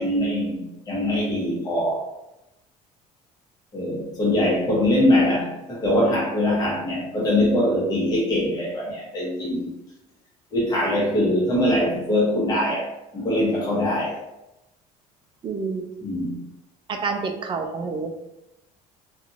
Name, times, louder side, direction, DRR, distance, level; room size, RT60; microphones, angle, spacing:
voice 1, 0.0-2.0 3.7-9.7 10.5-14.2 16.0-16.4, left 1 dB, 25° left, -5 dB, 1.0 m, -22 dB
voice 2, 15.4-15.8 16.9-18.1, right 4 dB, 30° right, 5 dB, 0.4 m, -28 dB
2.8 x 2.5 x 2.6 m, 0.90 s
cardioid pair, 125°, 16 cm